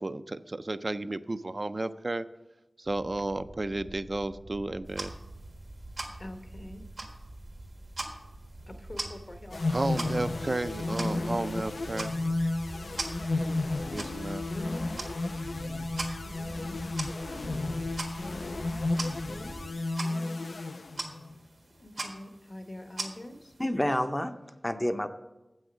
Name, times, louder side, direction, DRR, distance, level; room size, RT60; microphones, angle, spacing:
voice 1, 0.0-2.3 2.8-5.1 9.7-12.2 13.9-14.4, right 2 dB, 55° right, 11 dB, 0.4 m, -33 dB
sound 1, 2.9-19.7, right 1 dB, 70° right, 1.0 m, -46 dB
sound 2, 4.8-23.7, right 2 dB, 90° right, 1.4 m, -43 dB
voice 2, 6.2-6.8 8.6-10.1 13.1-14.3 16.2-16.9 18.9-19.5 21.7-23.6, left 1 dB, 60° left, 5 dB, 1.1 m, -46 dB
sound 3, 9.5-21.4, left 2 dB, 75° left, 0.3 m, -32 dB
voice 3, 23.6-25.1, left 1 dB, 20° left, 9 dB, 0.5 m, -29 dB
7.6 x 6.3 x 6.1 m, 1.0 s
wide cardioid pair, 40°, 0 cm